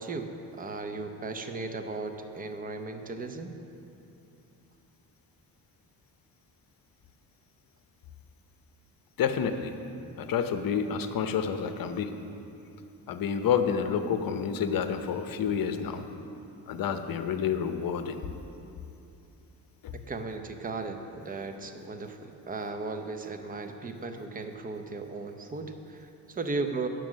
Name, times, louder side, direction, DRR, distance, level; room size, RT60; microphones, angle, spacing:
voice 1, 0.0-3.6 19.9-26.9, right 3 dB, 20° right, 6 dB, 0.6 m, -36 dB
voice 2, 9.2-9.8 10.2-12.1 13.1-16.1 16.7-18.1 19.8-19.9, left 7 dB, 60° left, 8 dB, 0.8 m, -29 dB
9.3 x 7.6 x 6.2 m, 2.7 s
cardioid pair, 120°, 40 cm